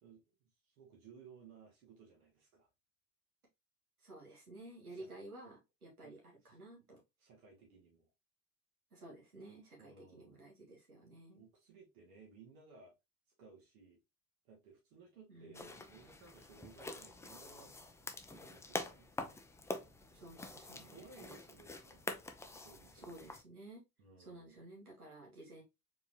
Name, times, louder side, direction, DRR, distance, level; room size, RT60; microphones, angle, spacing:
voice 1, 0.0-2.7 4.9-5.1 6.0-6.1 6.4-6.6 7.2-8.1 9.8-10.4 11.3-12.9 13.4-14.0 14.4-17.7 18.3-19.4 20.7-22.1 22.6-23.3 24.0-24.6, right 5 dB, 65° right, -2 dB, 2.2 m, -60 dB
voice 2, 4.0-7.0 8.9-11.4 15.3-15.8 20.1-21.1 22.9-23.8 24.2-25.6, right 2 dB, 80° right, -1 dB, 1.8 m, -53 dB
sound 1, 15.5-23.4, left 2 dB, 5° left, 0.5 m, -46 dB
4.5 x 4.0 x 2.8 m, 0.23 s
figure-of-eight pair, 65°, 44 cm